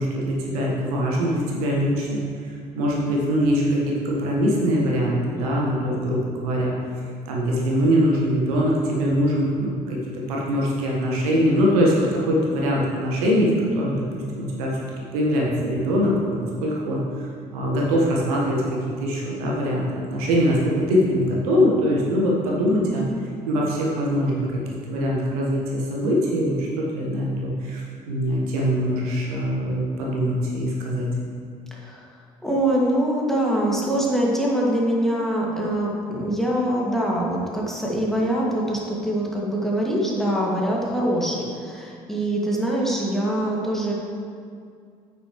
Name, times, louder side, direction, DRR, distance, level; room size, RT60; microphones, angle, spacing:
voice 1, 0.0-6.7 7.2-14.1 14.3-14.8 15.1-17.0 17.5-23.0 23.5-31.1, equal, 70° right, -3 dB, 1.4 m, -23 dB
voice 2, 31.7-32.1 32.4-43.9, right 1 dB, ahead, -4 dB, 2.2 m, -24 dB
9.4 x 8.5 x 3.2 m, 2.3 s
figure-of-eight pair, 50°, 20 cm